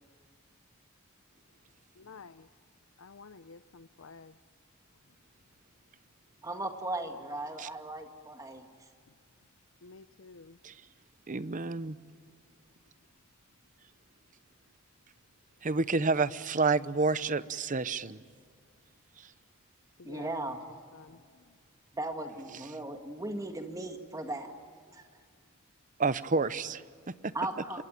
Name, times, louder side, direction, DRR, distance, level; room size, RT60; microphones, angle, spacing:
voice 1, 1.9-2.5 3.0-4.4 5.1-5.2 9.4-9.5 9.8-10.6 20.0-20.5 20.9-21.6, left 4 dB, 75° left, 0.7 m, -51 dB
voice 2, 6.4-8.9 20.0-20.6 21.9-24.5 24.9-25.0 27.3-27.8, right 2 dB, 15° right, 1.8 m, -37 dB
voice 3, 11.3-12.0 13.8-13.9 15.6-18.2 19.1-19.3 22.5-22.8 26.0-27.3 27.8-27.9, right 4 dB, 40° right, 0.8 m, -30 dB
27.5 x 22.5 x 9.0 m
head